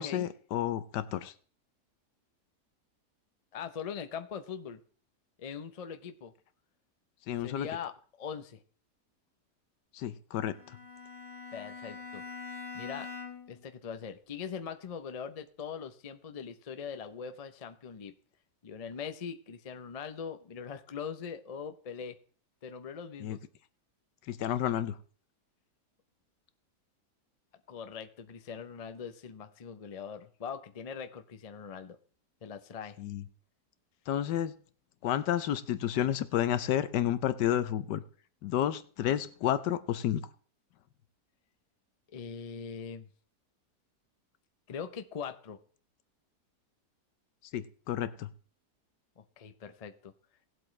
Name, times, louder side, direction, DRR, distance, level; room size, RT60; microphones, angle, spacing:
voice 1, 0.0-1.3 7.3-7.7 9.9-10.5 23.2-23.4 24.3-25.0 33.0-33.2 34.1-34.5 35.0-38.0 38.4-40.3 47.5-48.3, left 11 dB, 80° left, 14 dB, 1.4 m, -31 dB
voice 2, 3.5-4.8 5.4-6.3 7.4-7.9 8.2-8.6 11.5-12.2 12.7-13.1 13.5-18.1 18.6-22.2 22.6-23.4 27.7-32.0 32.4-33.0 42.1-43.1 44.7-45.6 49.2-50.1, left 7 dB, 50° left, 8 dB, 0.4 m, -41 dB
Bowed string instrument, 10.5-13.6, left 5 dB, 20° left, 2.2 m, -44 dB
18.5 x 7.8 x 3.2 m, 0.42 s
omnidirectional pair, 1.8 m